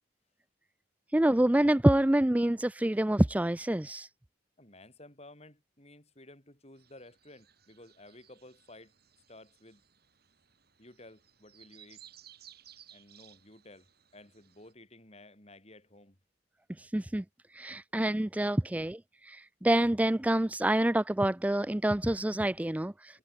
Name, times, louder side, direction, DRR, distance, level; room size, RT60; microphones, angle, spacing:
voice 1, 1.1-4.1 16.8-17.2 17.5-23.2, right 1 dB, 10° right, 0.4 m, -27 dB
voice 2, 4.6-8.9 9.3-9.8 10.8-12.1 12.9-16.2 23.1-23.2, left 1 dB, 35° left, 8.0 m, -54 dB
sound 1, 6.7-14.7, right 10 dB, 55° right, 7.0 m, -59 dB
head